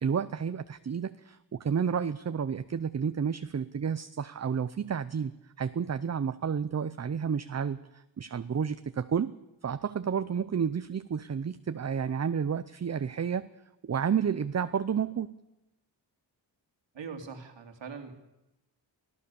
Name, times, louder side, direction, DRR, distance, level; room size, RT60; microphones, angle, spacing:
voice 1, 0.0-5.3 5.6-9.3 9.6-13.5 13.8-15.3, right 7 dB, 35° right, 12 dB, 0.6 m, -31 dB
voice 2, 16.9-18.1, right 5 dB, 80° right, 5 dB, 2.8 m, -41 dB
24.0 x 15.5 x 7.0 m, 0.94 s
wide cardioid pair, 125°, 44 cm